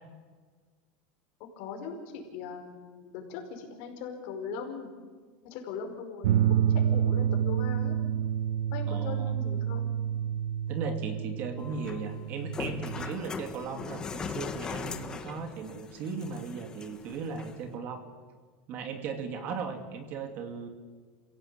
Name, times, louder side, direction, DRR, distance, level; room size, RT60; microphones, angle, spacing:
voice 1, 1.6-4.9 5.4-6.4 6.7-7.9 8.7-9.9 19.4-19.6, left 5 dB, 55° left, 3 dB, 5.2 m, -40 dB
sound 1, 6.2-13.1, right 9 dB, 75° right, 0.9 m, -29 dB
voice 2, 8.9-9.4 10.7-18.0 18.7-20.7, right 5 dB, 35° right, 6 dB, 2.5 m, -37 dB
sound 2, 11.6-17.6, left 5 dB, 15° left, 1.4 m, -40 dB
28.5 x 17.0 x 8.7 m, 1.5 s
supercardioid pair, 165°, 5 cm